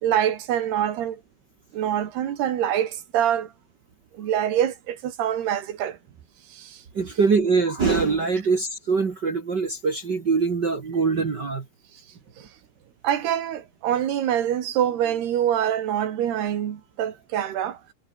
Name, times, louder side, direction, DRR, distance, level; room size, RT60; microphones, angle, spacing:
voice 1, 0.0-1.2 1.7-3.5 4.2-6.0 6.6-6.7 13.0-17.8, right 10 dB, 85° right, 4.3 m, -25 dB
voice 2, 6.9-11.6, right 4 dB, 40° right, 1.6 m, -23 dB
omnidirectional pair, 4.5 m